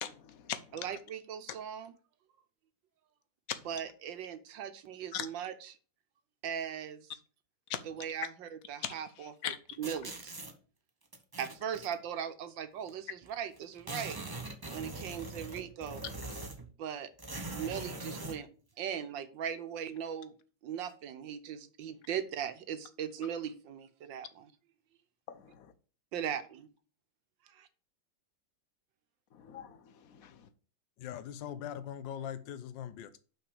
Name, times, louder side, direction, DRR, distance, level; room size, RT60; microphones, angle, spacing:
voice 1, 0.0-0.6 0.9-1.0 3.5-3.6 5.1-5.3 7.7-7.8 8.8-8.9 9.2-9.6 16.4-16.5 25.3-25.7 29.3-30.5, left 9 dB, 60° left, 1.1 m, -40 dB
voice 2, 0.7-1.9 3.6-5.8 6.4-7.1 7.8-9.5 9.8-10.4 11.4-14.2 14.7-16.0 16.8-17.1 17.5-18.5 18.8-20.3 20.6-24.5 26.1-26.4 27.5-27.7, right 8 dB, 80° right, 1.6 m, -39 dB
sound 1, 9.8-10.5 11.1-11.9 12.9-13.0 13.2-13.3 13.6-16.7 17.2-18.4, right 2 dB, 20° right, 0.7 m, -42 dB
voice 3, 31.0-33.2, left 9 dB, 80° left, 1.4 m, -41 dB
5.9 x 5.9 x 6.9 m
omnidirectional pair, 2.0 m